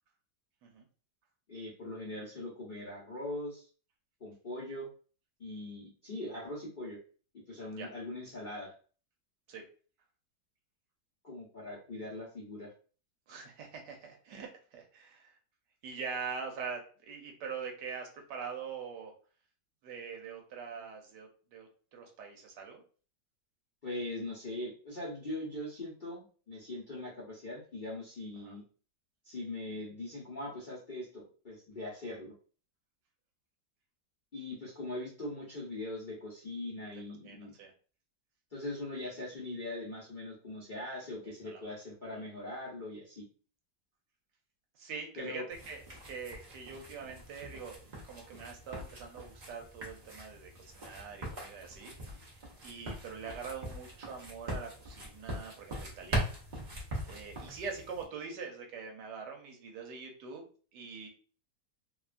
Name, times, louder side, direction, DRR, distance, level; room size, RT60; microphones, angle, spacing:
voice 1, 1.5-3.7 4.2-4.9 5.4-7.0 7.5-8.7 11.2-12.7 23.8-28.6 29.2-32.3 34.3-37.5 38.5-43.2 45.2-45.4, left 1 dB, 50° left, -7 dB, 0.5 m, -41 dB
voice 2, 13.3-15.4 15.8-19.1 19.8-22.8 28.4-28.6 37.2-37.7 41.2-41.7 42.1-42.2 44.8-45.8 46.0-56.4 57.0-61.1, right 5 dB, 75° right, 2 dB, 1.2 m, -44 dB
sound 1, 45.5-58.0, right 1 dB, 50° right, 0.5 m, -41 dB
3.0 x 2.3 x 2.4 m, 0.40 s
omnidirectional pair, 2.0 m